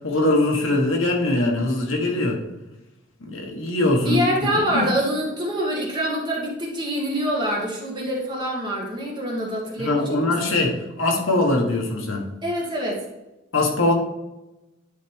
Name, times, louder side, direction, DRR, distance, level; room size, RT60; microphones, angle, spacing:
voice 1, 0.0-2.4 3.2-4.2 4.5-4.9 9.8-12.3 13.5-13.9, left 2 dB, 80° left, 1 dB, 1.4 m, -22 dB
voice 2, 4.0-10.3 12.4-13.0, equal, 20° right, -3 dB, 1.8 m, -25 dB
10.0 x 4.2 x 3.6 m, 0.99 s
head